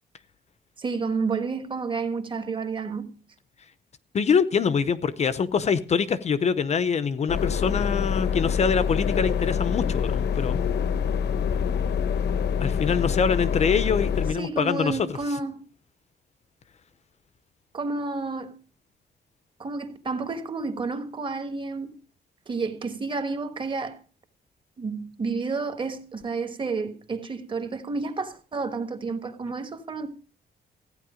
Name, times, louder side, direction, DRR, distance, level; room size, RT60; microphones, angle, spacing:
voice 1, 0.8-3.1 14.4-15.6 17.7-18.5 19.6-21.9 22.5-24.0 24.8-30.1, right 4 dB, 30° right, 1.4 m, -30 dB
voice 2, 4.1-10.6 12.6-15.1, left 6 dB, 40° left, 0.6 m, -24 dB
sound 1, 7.3-14.3, left 7 dB, 75° left, 0.9 m, -25 dB
15.0 x 9.6 x 5.0 m
wide cardioid pair, 170°, 18 cm